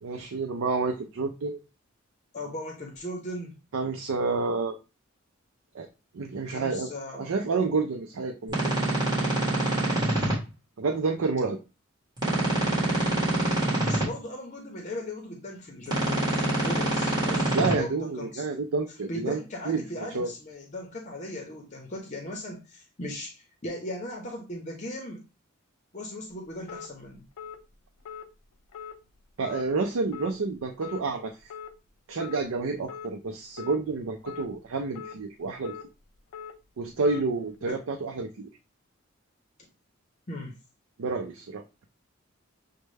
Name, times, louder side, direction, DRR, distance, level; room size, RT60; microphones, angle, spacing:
voice 1, 0.0-1.6 3.7-4.8 5.7-5.9 6.1-8.9 10.8-11.6 17.5-19.4 19.7-19.8 20.1-20.3 29.4-31.4 32.1-35.8 36.8-38.5 41.0-41.6, right 4 dB, 75° right, 5 dB, 0.5 m, -29 dB
voice 2, 2.3-3.6 6.5-7.3 13.9-18.4 19.1-25.2 25.9-27.3 37.6-37.8 40.3-40.6, left 1 dB, 35° left, 1 dB, 0.7 m, -38 dB
sound 1, 8.5-10.3 12.2-14.0 15.9-17.7, right 1 dB, 20° right, 1.7 m, -25 dB
sound 2, 26.7-26.9 27.4-27.6 28.1-28.3 28.7-29.0 29.4-29.6 30.1-30.3 30.8-31.0 31.5-31.7 32.2-32.4 32.9-33.1 33.6-33.8 34.3-34.5 34.9-35.2 35.6-35.9 36.3-36.5 37.0-37.2, left 7 dB, 85° left, 0.5 m, -40 dB
6.3 x 2.2 x 3.2 m, 0.29 s
head